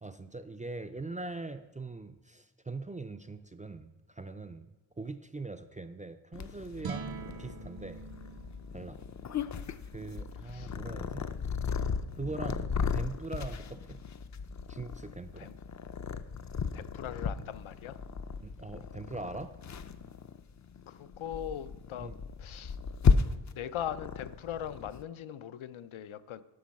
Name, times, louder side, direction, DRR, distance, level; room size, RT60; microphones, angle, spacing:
voice 1, 0.0-8.1 8.7-9.0 9.9-11.3 12.2-14.0 14.7-15.5 18.4-19.6 22.0-22.2, right 3 dB, 20° right, 9 dB, 0.3 m, -42 dB
Purr, 6.3-25.0, left 5 dB, 40° left, 0.5 m, -35 dB
sound 1, 6.7-13.1, right 6 dB, 50° right, 0.7 m, -47 dB
voice 2, 10.4-10.8 15.4-15.5 16.7-18.0 20.9-22.1 22.4-22.8 23.5-26.4, left 10 dB, 80° left, 13 dB, 0.6 m, -40 dB
11.5 x 6.3 x 5.3 m, 1.0 s
wide cardioid pair, 115°, 47 cm